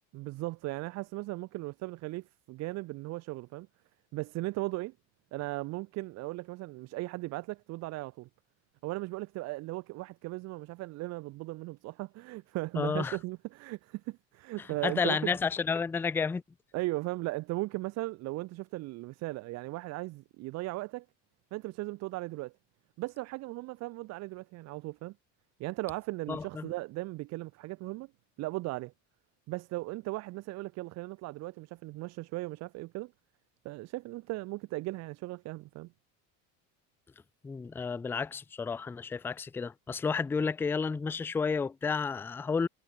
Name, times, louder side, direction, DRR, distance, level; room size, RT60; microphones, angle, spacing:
voice 1, 0.1-3.7 4.1-4.9 5.3-8.3 8.8-15.4 16.7-21.1 21.5-22.5 23.0-25.1 25.6-28.1 28.4-28.9 29.5-33.1 33.6-35.9, right 20 dB, 45° right, 2.6 m, -37 dB
voice 2, 12.8-13.2 14.8-16.4 26.3-26.7 37.4-42.7, left 5 dB, 5° left, 0.5 m, -31 dB
cardioid pair, 180°, 36 cm